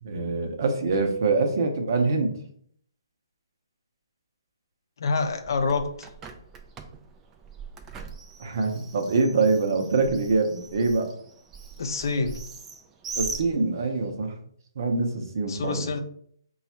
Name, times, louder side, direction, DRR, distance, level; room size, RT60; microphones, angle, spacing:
voice 1, 0.0-2.3 8.4-11.1 13.2-14.3 14.8-15.9, right 3 dB, 50° right, 4 dB, 0.7 m, -24 dB
voice 2, 5.0-6.1 11.8-12.4 15.5-16.0, left 4 dB, 60° left, 7 dB, 0.5 m, -27 dB
Bird, 5.2-14.1, right 5 dB, 10° right, 0.3 m, -41 dB
4.0 x 2.4 x 4.2 m, 0.63 s
hypercardioid pair, 165°, 2 cm